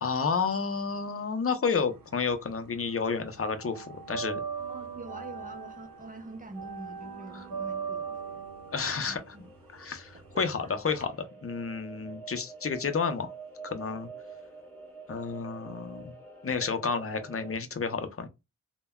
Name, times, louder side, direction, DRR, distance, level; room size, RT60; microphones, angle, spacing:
voice 1, 0.0-4.4 7.3-7.4 8.7-9.4 9.7-13.3 13.6-14.1 15.1-16.1 16.4-18.3, left 5 dB, 45° left, 0.6 m, -31 dB
sound 1, 1.7-2.9 3.1-11.0, right 6 dB, 85° right, 0.6 m, -39 dB
sound 2, 3.9-17.6, right 3 dB, 5° left, 1.7 m, -49 dB
voice 2, 4.7-8.4 8.9-9.5 10.1-10.7 11.9-12.1, right 2 dB, 25° right, 0.7 m, -45 dB
3.2 x 2.2 x 2.2 m
cardioid pair, 50°, 33 cm